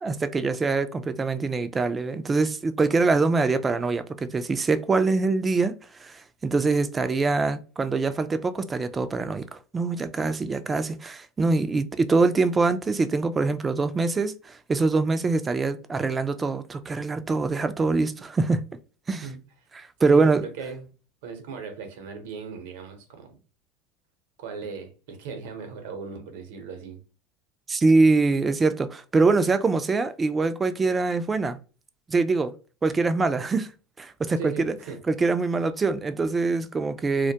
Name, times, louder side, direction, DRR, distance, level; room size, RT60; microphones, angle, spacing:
voice 1, 0.0-5.7 6.0-18.6 19.1-19.2 19.8-20.4 27.7-31.6 32.1-32.5 32.8-33.7 34.0-34.7 35.1-37.3, right 3 dB, 20° right, 0.3 m, -24 dB
voice 2, 20.1-20.9 21.2-23.4 24.4-27.0 34.4-35.0, right 5 dB, 75° right, 0.7 m, -37 dB
2.1 x 2.1 x 2.7 m
hypercardioid pair, 95°, 0 cm